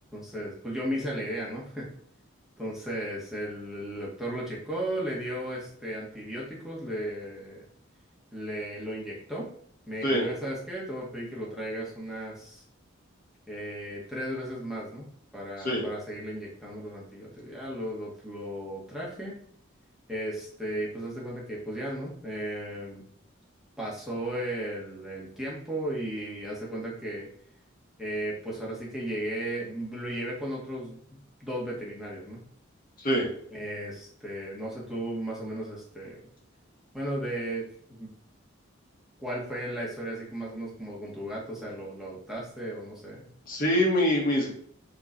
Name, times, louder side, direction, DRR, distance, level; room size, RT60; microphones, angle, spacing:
voice 1, 0.1-1.9 2.6-7.6 8.3-9.5 9.9-12.6 13.5-19.4 20.1-23.0 23.8-27.3 28.0-32.4 33.5-36.3 36.9-38.1 39.2-43.3, right 1 dB, ahead, -5 dB, 1.7 m, -35 dB
voice 2, 43.5-44.5, equal, 45° left, -2 dB, 2.0 m, -24 dB
7.8 x 3.3 x 4.3 m, 0.64 s
head